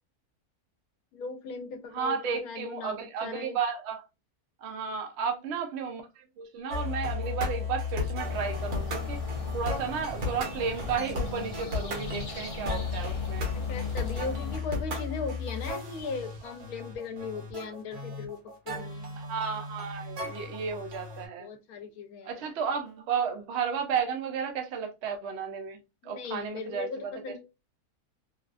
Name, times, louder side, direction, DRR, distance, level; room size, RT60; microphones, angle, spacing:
voice 1, 1.1-3.6 13.5-18.4 18.7-19.2 21.4-22.4 26.0-27.4, left 4 dB, 80° left, 1.1 m, -38 dB
voice 2, 1.9-4.0 4.6-9.2 9.5-13.5 19.2-21.5 22.2-25.8 26.0-27.1, right 6 dB, 65° right, 0.7 m, -33 dB
sound 1, 6.7-21.3, left 4 dB, 80° right, 1.5 m, -35 dB
sound 2, 8.2-14.6, left 2 dB, 40° left, 0.5 m, -39 dB
3.3 x 2.3 x 2.3 m
omnidirectional pair, 1.6 m